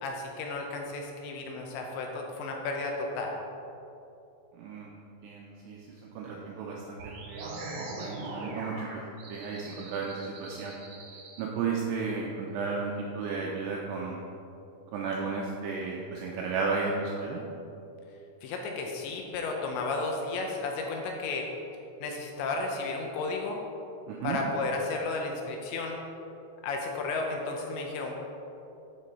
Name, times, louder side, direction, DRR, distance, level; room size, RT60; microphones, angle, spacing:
voice 1, 0.0-3.4 18.4-21.5 22.0-23.6 24.2-26.0 26.6-28.1, left 3 dB, 80° left, 1 dB, 2.8 m, -33 dB
voice 2, 4.6-4.9 5.2-5.8 6.2-9.0 9.3-10.7 11.4-14.2 14.9-17.4 24.1-24.4, right 4 dB, 85° right, -2 dB, 2.4 m, -34 dB
sound 1, 7.0-11.4, right 2 dB, 65° right, 2.3 m, -41 dB
12.0 x 5.3 x 4.2 m, 2.8 s
omnidirectional pair, 5.5 m